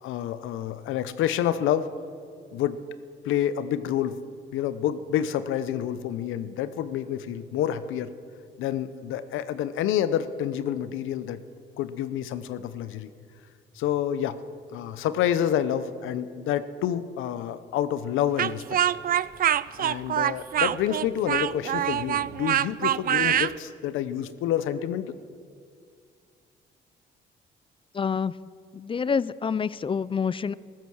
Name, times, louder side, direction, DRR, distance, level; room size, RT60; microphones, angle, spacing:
voice 1, 0.0-1.9 2.5-2.8 3.2-4.2 4.5-8.2 8.6-11.4 11.8-13.1 13.8-14.4 14.7-18.8 19.8-25.1, left 10 dB, 90° left, 13 dB, 0.8 m, -28 dB
Speech, 18.4-23.5, right 10 dB, 45° right, 0.4 m, -24 dB
voice 2, 27.9-28.3 28.7-30.5, left 6 dB, 25° left, 19 dB, 0.4 m, -27 dB
15.0 x 13.0 x 6.3 m, 2.2 s
cardioid pair, 90°, 20 cm